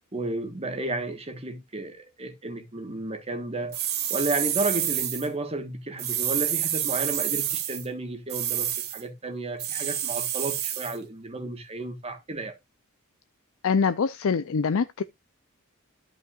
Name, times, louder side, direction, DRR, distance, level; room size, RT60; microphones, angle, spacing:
voice 1, 0.1-3.8 4.1-12.6, right 2 dB, 30° right, 1.3 m, -32 dB
sound 1, 3.7-5.3 6.0-7.9 8.3-9.0 9.6-11.0, right 11 dB, 45° right, 1.3 m, -28 dB
voice 2, 13.6-15.0, left 5 dB, 65° left, 0.5 m, -24 dB
13.0 x 5.6 x 2.4 m
head